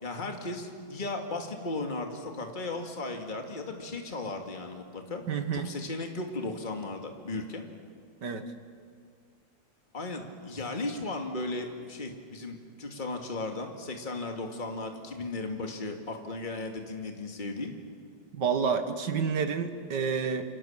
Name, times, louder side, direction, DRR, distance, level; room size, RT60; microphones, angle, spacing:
voice 1, 0.0-5.2 5.5-7.6 9.9-17.7, left 2 dB, 25° left, 3 dB, 2.3 m, -36 dB
voice 2, 5.3-5.7 8.2-8.5 18.3-20.5, right 6 dB, 65° right, 9 dB, 2.0 m, -29 dB
28.5 x 26.0 x 7.4 m, 2.2 s
omnidirectional pair, 2.1 m